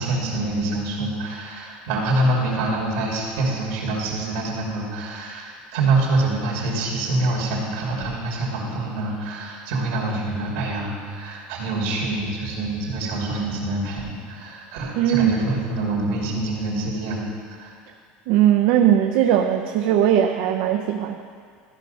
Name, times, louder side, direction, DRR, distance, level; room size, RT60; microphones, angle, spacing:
voice 1, 0.0-17.2 17.6-17.7, right 2 dB, 85° right, -3 dB, 2.7 m, -25 dB
voice 2, 15.0-15.4 18.3-21.2, right 10 dB, 70° right, 4 dB, 0.6 m, -19 dB
13.5 x 5.4 x 5.5 m, 2.1 s
supercardioid pair, 125°, 4 cm